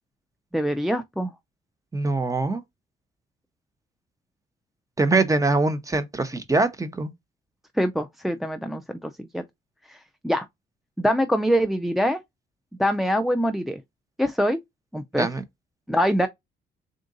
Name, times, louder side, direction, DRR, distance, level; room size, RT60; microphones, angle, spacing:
voice 1, 0.5-1.3 7.8-9.4 9.9-10.0 10.2-10.5 11.0-12.2 12.8-13.8 14.2-14.6 14.9-15.3 15.9-16.3, equal, ahead, 0.3 m, -24 dB
voice 2, 1.9-2.6 5.0-7.1 15.2-15.4, right 3 dB, 15° right, 0.7 m, -23 dB
3.8 x 2.5 x 3.7 m
cardioid pair, 90°, 20 cm